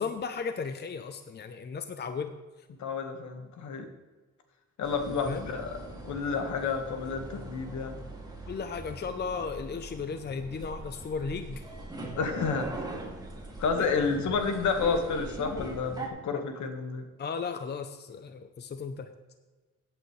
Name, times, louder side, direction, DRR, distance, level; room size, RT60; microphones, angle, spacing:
voice 1, 0.0-2.3 5.2-5.5 8.5-11.6 13.8-14.3 16.3-16.4 17.2-19.1, left 5 dB, 35° left, 9 dB, 0.7 m, -35 dB
voice 2, 2.8-3.8 4.8-5.8 6.1-8.0 12.2-12.7 13.6-17.1, left 5 dB, 70° left, 5 dB, 1.7 m, -30 dB
sound 1, 4.8-16.1, right 2 dB, 15° right, 2.6 m, -41 dB
16.5 x 8.8 x 3.3 m, 1.3 s
cardioid pair, 90°, 30 cm